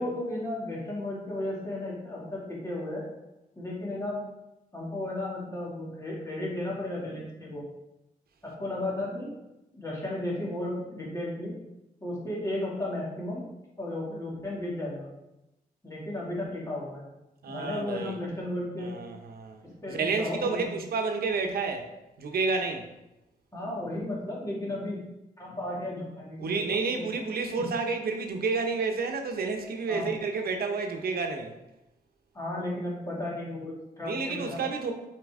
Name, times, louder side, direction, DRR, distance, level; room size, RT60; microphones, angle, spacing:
voice 1, 0.0-3.0 3.6-4.2 4.7-7.7 8.4-9.3 9.7-11.5 12.0-13.4 13.8-15.1 15.8-17.1 17.5-19.0 19.6-20.7 23.5-25.0 25.4-26.6 26.9-27.1 27.6-27.7 29.9-30.1 32.3-34.6, left 1 dB, 20° left, -5 dB, 2.3 m, -34 dB
voice 2, 17.4-18.2 18.8-19.6 19.9-21.9 22.2-22.9 26.4-31.5 34.0-34.9, right 4 dB, 80° right, 4 dB, 0.8 m, -30 dB
7.6 x 4.4 x 3.6 m, 0.94 s
wide cardioid pair, 105°, 15 cm